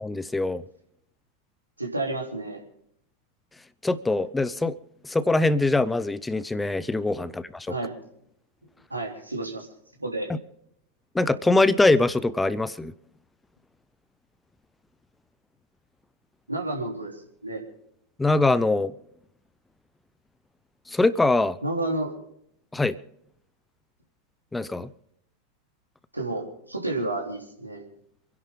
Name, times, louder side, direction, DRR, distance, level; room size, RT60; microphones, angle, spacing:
voice 1, 0.0-0.6 3.8-4.8 5.0-7.7 10.3-10.4 11.1-12.9 18.2-18.9 20.9-21.6 22.7-23.0 24.5-24.9, left 2 dB, 10° left, 0.7 m, -23 dB
voice 2, 1.8-2.6 7.2-7.4 7.7-8.0 8.9-9.7 10.0-10.3 16.5-17.6 21.6-22.1 26.1-27.9, right 2 dB, 85° right, 3.5 m, -31 dB
27.5 x 11.0 x 3.7 m
figure-of-eight pair, 90°, 0 cm